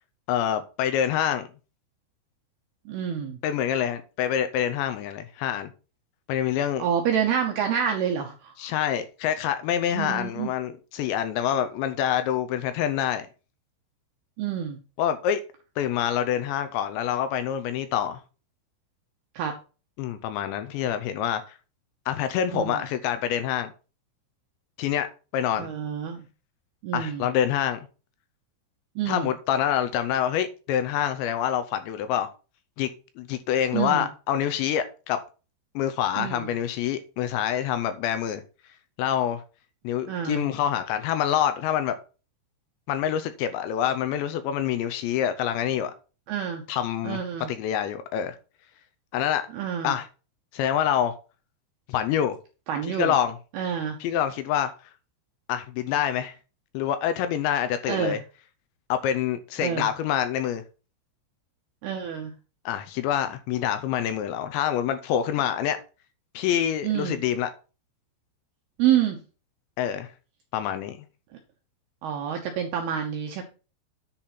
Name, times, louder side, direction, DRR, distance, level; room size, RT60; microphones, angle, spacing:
voice 1, 0.3-1.5 3.4-5.7 6.3-6.9 8.6-13.3 15.0-15.4 15.8-18.2 20.0-21.6 22.1-23.7 24.8-25.1 25.3-25.7 26.9-27.8 29.1-32.3 32.8-32.9 33.2-35.2 35.8-38.4 39.0-39.4 39.8-41.9 42.9-45.9 46.7-47.2 47.5-48.4 49.1-49.4 49.8-50.1 50.5-51.1 51.9-52.4 53.0-53.3 54.0-54.7 55.5-56.3 56.7-58.2 58.9-60.6 62.7-65.8 66.3-67.5 69.8-70.1 70.5-71.0, left 10 dB, 80° left, 2.7 m, -26 dB
voice 2, 2.9-3.4 6.8-8.7 9.9-10.5 14.4-14.8 19.3-19.5 22.5-22.8 25.6-26.2 26.8-27.3 29.0-29.3 33.7-34.1 36.2-36.5 40.1-40.5 46.3-46.6 47.0-47.5 49.5-49.9 52.7-53.1 53.5-54.0 57.9-58.2 59.6-59.9 61.8-62.3 66.8-67.2 68.8-69.2 72.0-73.4, right 9 dB, 75° right, 2.4 m, -27 dB
10.0 x 4.2 x 5.9 m
omnidirectional pair, 5.7 m